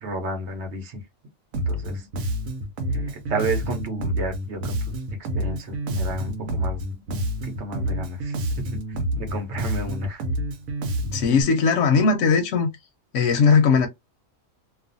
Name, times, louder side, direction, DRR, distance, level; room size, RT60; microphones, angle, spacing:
voice 1, 0.0-1.0 1.7-2.1 2.9-4.9 5.3-6.8 7.1-8.8 9.2-10.2, right 2 dB, 60° right, 1.0 m, -32 dB
Bass guitar, 1.5-11.4, right 1 dB, 90° right, 1.1 m, -28 dB
voice 2, 11.1-12.7 13.1-13.9, left 5 dB, 70° left, 1.0 m, -18 dB
2.5 x 2.4 x 2.5 m
omnidirectional pair, 1.4 m